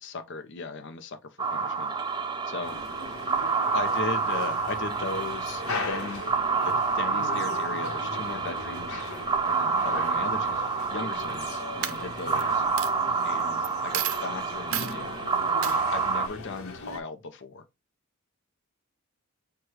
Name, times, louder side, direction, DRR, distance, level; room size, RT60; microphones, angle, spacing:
voice 1, 0.0-1.9 2.5-2.8 3.7-6.3 6.6-9.1 9.5-12.6 13.2-15.2 15.6-17.6, left 4 dB, 60° left, 0.6 m, -37 dB
sound 1, 1.4-16.3, right 5 dB, 20° right, 0.3 m, -28 dB
sound 2, 2.6-17.0, left 3 dB, 90° left, 0.9 m, -39 dB
Coin (dropping), 11.2-11.5 11.8-12.4 12.8-12.9 13.6-13.7 13.9-14.2 14.7-14.9 15.6-15.8, right 11 dB, 75° right, 0.5 m, -30 dB
6.2 x 2.3 x 3.0 m
head